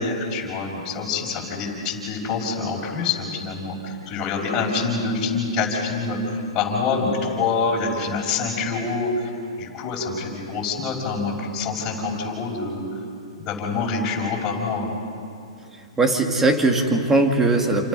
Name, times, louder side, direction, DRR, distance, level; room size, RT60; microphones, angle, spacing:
voice 1, 0.0-9.3 9.6-12.8 13.4-14.9, left 4 dB, 20° left, -5 dB, 5.7 m, -26 dB
voice 2, 16.0-17.9, right 2 dB, 10° right, 3 dB, 2.3 m, -19 dB
29.0 x 27.0 x 5.5 m, 2.4 s
hypercardioid pair, 150°, 3 cm